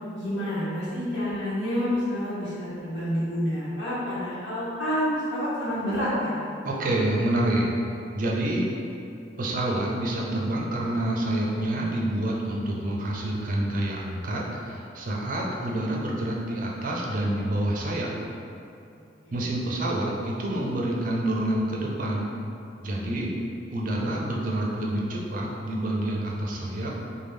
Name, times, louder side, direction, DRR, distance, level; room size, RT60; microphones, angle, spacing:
voice 1, 0.2-6.4 19.2-19.5, equal, 80° left, -10 dB, 1.1 m, -28 dB
voice 2, 6.6-7.7 8.1-8.7 9.4-18.1 19.3-22.3 22.8-23.3 23.7-26.9, right 1 dB, 50° right, -2 dB, 0.5 m, -27 dB
3.4 x 2.2 x 3.2 m, 2.6 s
head